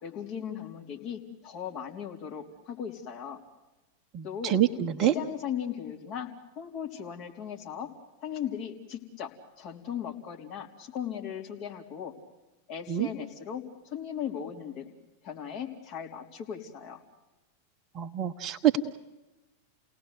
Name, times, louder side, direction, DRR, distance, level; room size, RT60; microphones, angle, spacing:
voice 1, 0.0-3.4 4.2-4.6 5.0-7.9 8.2-9.3 9.6-12.1 12.7-15.0 15.2-17.0, left 8 dB, 40° left, 1 dB, 3.5 m, -37 dB
voice 2, 4.1-5.1 12.9-13.1 17.9-18.8, right 11 dB, 35° right, 8 dB, 1.2 m, -26 dB
29.5 x 18.0 x 8.2 m, 1.1 s
figure-of-eight pair, 90°, 0 cm